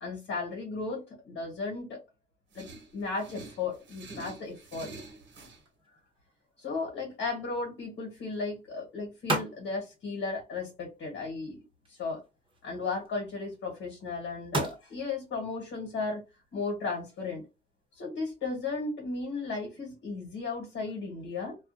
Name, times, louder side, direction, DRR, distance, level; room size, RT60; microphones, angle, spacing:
voice 1, 0.0-2.0 2.5-2.7 2.9-4.9 6.6-11.6 11.9-12.2 12.6-16.2 16.5-17.4 17.9-21.6, left 4 dB, 75° left, 1.3 m, -35 dB
sound 1, 2.5-5.6, right 3 dB, 70° right, 1.0 m, -47 dB
sound 2, 5.3-18.1, right 2 dB, 25° right, 0.9 m, -41 dB
2.3 x 2.3 x 2.5 m
cardioid pair, 90°, 20 cm